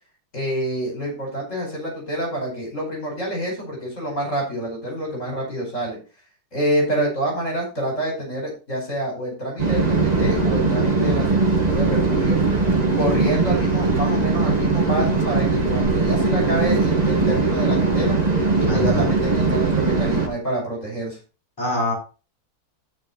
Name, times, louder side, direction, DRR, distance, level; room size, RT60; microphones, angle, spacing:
voice 1, 0.3-6.0 6.5-12.4 12.9-18.2 18.6-21.2, right 1 dB, 50° left, -2 dB, 5.4 m, -27 dB
sound 1, 9.6-20.3, right 3 dB, 25° right, 1.7 m, -20 dB
voice 2, 18.6-19.1 21.6-21.9, left 2 dB, 15° left, -3 dB, 4.8 m, -25 dB
13.0 x 6.1 x 4.1 m, 0.32 s
omnidirectional pair, 1.7 m